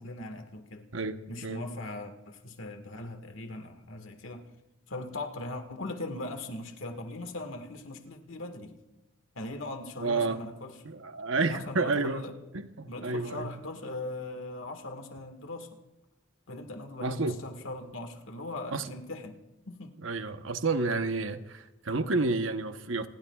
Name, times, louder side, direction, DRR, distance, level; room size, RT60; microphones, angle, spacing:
voice 1, 0.0-0.9 1.3-4.4 4.9-8.7 9.3-10.8 11.5-12.3 12.9-15.8 16.5-19.4 19.7-20.0, left 2 dB, 90° left, 1.7 m, -40 dB
voice 2, 0.9-1.6 10.0-10.4 10.8-12.2 12.5-13.5 17.0-17.3 18.7-18.9 20.0-23.1, right 3 dB, 90° right, 1.0 m, -30 dB
28.0 x 20.0 x 2.4 m
head